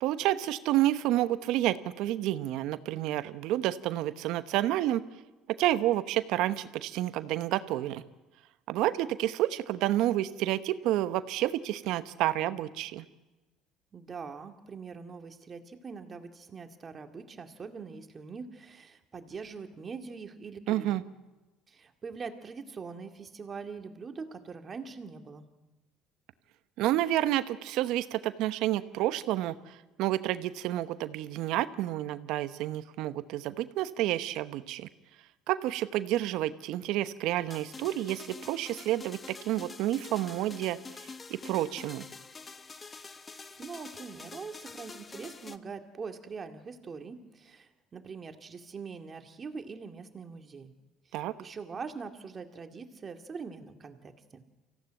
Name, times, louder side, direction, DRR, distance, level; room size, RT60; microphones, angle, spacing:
voice 1, 0.0-5.0 5.6-8.0 8.7-13.1 20.7-21.0 26.8-34.9 35.5-39.2 39.4-40.8 41.3-42.1 51.1-51.3, right 14 dB, 70° right, 13 dB, 1.0 m, -29 dB
voice 2, 13.9-21.0 21.7-25.5 43.6-50.7 51.1-54.4, right 5 dB, 35° right, 6 dB, 2.2 m, -43 dB
sound 1, 37.5-45.6, left 4 dB, 30° left, 1.1 m, -46 dB
24.5 x 16.0 x 9.0 m, 1.1 s
supercardioid pair, 80°, 0 cm